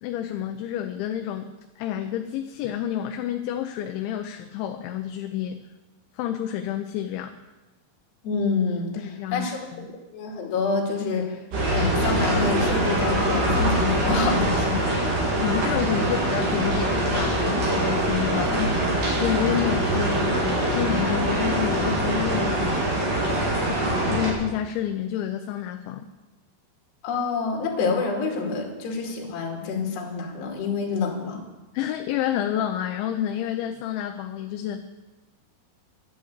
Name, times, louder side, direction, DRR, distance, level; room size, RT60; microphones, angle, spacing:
voice 1, 0.0-5.6 6.1-7.3 9.0-9.9 15.4-18.9 19.2-22.8 23.6-26.1 31.7-34.8, left 10 dB, 80° left, 6 dB, 3.0 m, -29 dB
voice 2, 8.2-11.4 11.7-15.0 15.7-15.8 18.3-18.5 27.0-31.4, left 4 dB, 65° left, 0 dB, 4.4 m, -27 dB
sound 1, 11.5-24.3, right 1 dB, 45° right, 4.4 m, -23 dB
11.5 x 11.5 x 8.1 m, 1.1 s
omnidirectional pair, 5.4 m